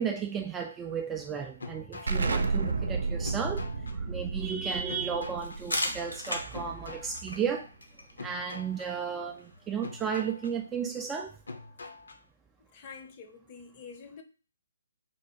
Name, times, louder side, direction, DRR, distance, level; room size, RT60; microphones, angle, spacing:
voice 1, 0.0-7.7 8.2-11.4, right 7 dB, 10° right, 0.3 m, -34 dB
sound 1, 1.6-2.3 3.2-4.0 4.9-5.6 6.5-7.2 8.2-8.9 9.8-10.5 11.5-12.2, left 3 dB, 65° left, 0.7 m, -44 dB
Explosion, 2.1-7.5, right 4 dB, 65° right, 0.6 m, -32 dB
sound 2, 5.4-10.9, left 1 dB, 85° left, 1.3 m, -39 dB
voice 2, 12.7-14.2, left 5 dB, 30° left, 0.6 m, -47 dB
4.3 x 2.2 x 4.4 m
figure-of-eight pair, 140°, 0 cm